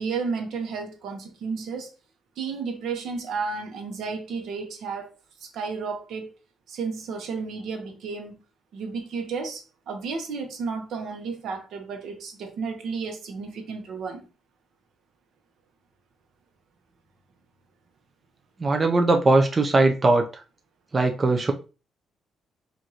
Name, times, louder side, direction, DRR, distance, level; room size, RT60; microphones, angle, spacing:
voice 1, 0.0-1.9 2.4-6.4 6.7-8.4 8.7-14.3, right 5 dB, 75° right, 0.9 m, -32 dB
voice 2, 18.6-20.3 20.9-21.5, right 2 dB, 30° right, 0.5 m, -20 dB
4.7 x 2.5 x 2.8 m
cardioid pair, 90°, 0 cm